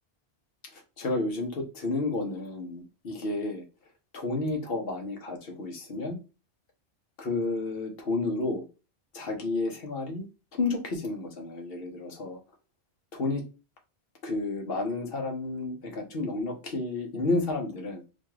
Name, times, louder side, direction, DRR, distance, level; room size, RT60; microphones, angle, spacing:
voice 1, 0.7-3.6 4.1-6.2 7.2-8.6 9.1-10.2 10.5-12.4 13.1-13.4 14.2-18.0, left 3 dB, 65° left, 3 dB, 1.1 m, -31 dB
4.1 x 2.4 x 3.1 m, 0.31 s
omnidirectional pair, 1.1 m